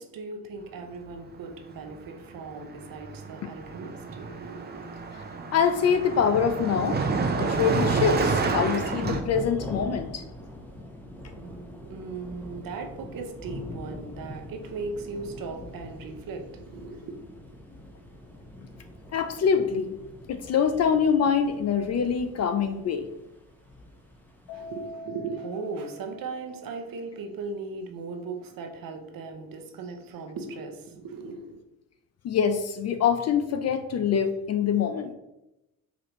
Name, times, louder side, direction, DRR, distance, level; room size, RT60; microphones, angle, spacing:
voice 1, 0.0-4.9 11.4-17.1 24.5-31.6, right 4 dB, 50° right, 5 dB, 0.8 m, -38 dB
Car passing by, 1.7-2.0 2.2-9.2, right 4 dB, 25° right, 0.6 m, -29 dB
voice 2, 5.5-7.0 7.4-10.2 19.1-20.0 20.3-23.1 32.2-35.1, left 7 dB, 40° left, 8 dB, 0.4 m, -24 dB
Thunder / Rain, 8.6-24.9, left 1 dB, 5° left, 0.9 m, -43 dB
Keyboard (musical), 24.5-27.0, left 1 dB, 75° left, 0.8 m, -44 dB
5.0 x 2.4 x 3.0 m, 0.92 s
hypercardioid pair, 60°, 43 cm